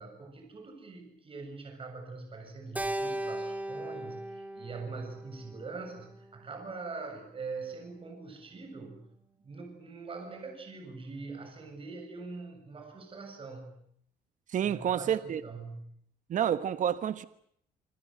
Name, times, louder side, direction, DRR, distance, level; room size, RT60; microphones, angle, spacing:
voice 1, 0.0-9.0 9.4-13.8 14.6-15.8, right 4 dB, 30° right, 7.3 m, -43 dB
Keyboard (musical), 2.8-7.2, right 1 dB, 10° right, 2.2 m, -38 dB
voice 2, 14.5-15.4 16.3-17.2, right 9 dB, 50° right, 1.3 m, -29 dB
26.5 x 26.0 x 7.9 m
cardioid pair, 110°, 17 cm